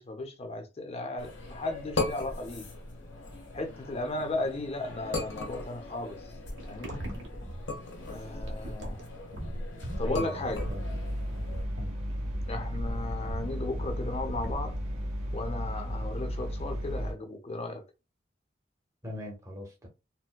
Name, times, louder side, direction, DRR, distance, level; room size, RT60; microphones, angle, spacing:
voice 1, 0.0-2.7 3.5-6.3 6.7-7.1 8.1-9.1 10.0-10.7 12.5-14.7 15.3-17.8, left 2 dB, 35° left, 0.6 m, -35 dB
sound 1, 1.2-11.6, left 3 dB, 85° left, 1.1 m, -39 dB
sound 2, 6.6-15.0, equal, 75° right, 0.9 m, -39 dB
voice 2, 10.0-10.8 11.7-12.0 19.0-19.9, left 1 dB, 15° right, 0.9 m, -40 dB
sound 3, 10.5-17.1, equal, 40° right, 1.5 m, -34 dB
4.2 x 2.1 x 2.2 m
head